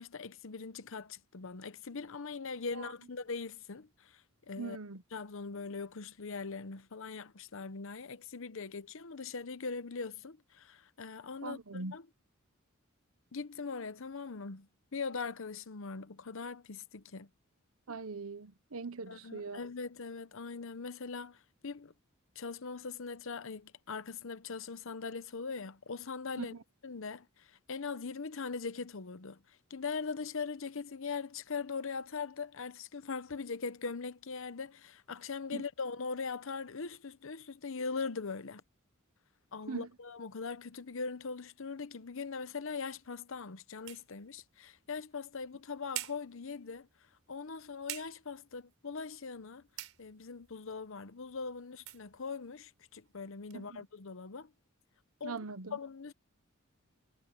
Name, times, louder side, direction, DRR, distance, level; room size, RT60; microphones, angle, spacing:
voice 1, 0.0-4.2 4.5-4.8 5.1-12.0 13.3-17.3 19.1-21.9 22.4-26.5 26.8-38.6 39.5-46.9 47.3-49.6 50.0-54.5 55.2-55.4 55.7-56.1, left 4 dB, 65° left, 0.8 m, -41 dB
voice 2, 4.6-5.0 11.4-12.0 17.9-19.6 26.4-26.6 35.5-35.6 39.7-39.9 53.5-53.8 55.2-55.8, right 4 dB, 90° right, 1.0 m, -41 dB
sound 1, 42.1-53.6, right 14 dB, 70° right, 7.0 m, -51 dB
head